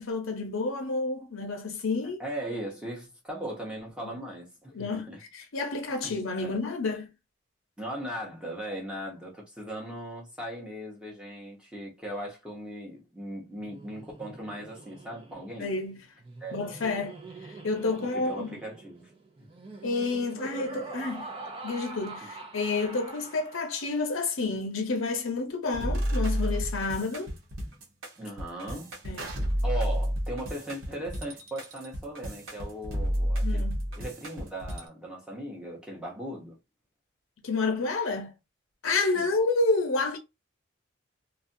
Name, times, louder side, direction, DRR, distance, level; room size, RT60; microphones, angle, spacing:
voice 1, 0.0-2.2 4.7-7.1 15.6-15.9 16.5-17.2 17.4-18.5 19.8-21.3 21.6-27.3 29.0-29.4 33.4-33.8 37.4-38.3 38.8-40.2, left 3 dB, 90° left, 0.7 m, -29 dB
voice 2, 2.2-5.2 6.0-6.1 6.4-6.6 7.8-15.7 16.4-16.7 17.9-19.1 19.4-19.5 22.2-22.3 28.2-29.0 29.6-33.6 34.0-36.6 39.1-39.3, right 1 dB, 5° right, 0.8 m, -38 dB
Laughter, 13.6-24.1, right 3 dB, 25° right, 0.5 m, -44 dB
sound 1, 25.7-34.8, equal, 85° right, 0.9 m, -30 dB
2.5 x 2.2 x 2.6 m
head